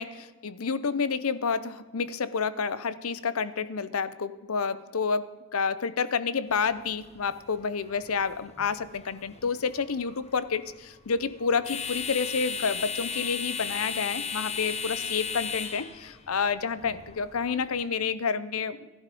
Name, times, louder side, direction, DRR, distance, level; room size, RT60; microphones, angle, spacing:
voice 1, 0.0-18.9, left 5 dB, 85° left, 16 dB, 0.7 m, -29 dB
sound 1, 6.5-17.8, left 6 dB, 30° left, 1.2 m, -37 dB
13.5 x 11.0 x 5.2 m, 1.3 s
head